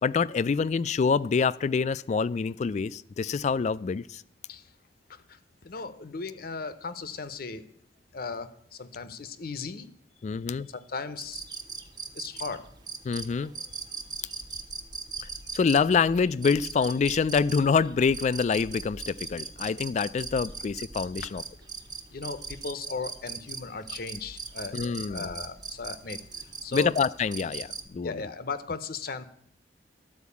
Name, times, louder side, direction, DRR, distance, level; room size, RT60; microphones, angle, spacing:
voice 1, 0.0-4.2 10.2-10.7 13.1-13.5 15.5-21.4 24.7-25.3 26.7-28.2, left 5 dB, 40° left, 18 dB, 0.3 m, -26 dB
voice 2, 5.3-7.7 8.1-9.9 10.7-11.4 12.1-12.7 22.1-26.2 26.6-27.0 28.0-29.2, left 4 dB, 55° left, 12 dB, 0.7 m, -37 dB
sound 1, 11.2-27.9, right 4 dB, 25° right, 0.9 m, -40 dB
12.0 x 4.7 x 8.3 m, 0.66 s
head